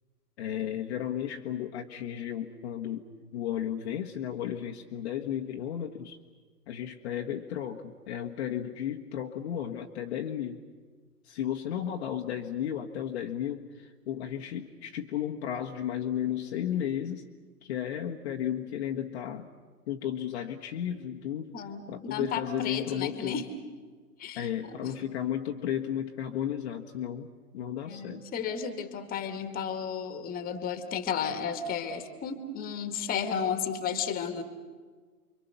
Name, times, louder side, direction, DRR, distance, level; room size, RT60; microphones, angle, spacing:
voice 1, 0.4-3.1 3.3-6.2 6.7-10.6 11.2-17.2 17.6-19.5 19.9-21.5 21.9-23.5 24.3-27.3 27.5-28.2, left 10 dB, 45° left, 1 dB, 1.5 m, -34 dB
voice 2, 22.1-23.5 24.2-24.9 27.9-34.4, left 7 dB, 20° left, 8 dB, 2.1 m, -33 dB
29.5 x 24.0 x 6.9 m, 1.5 s
figure-of-eight pair, 120°, 46 cm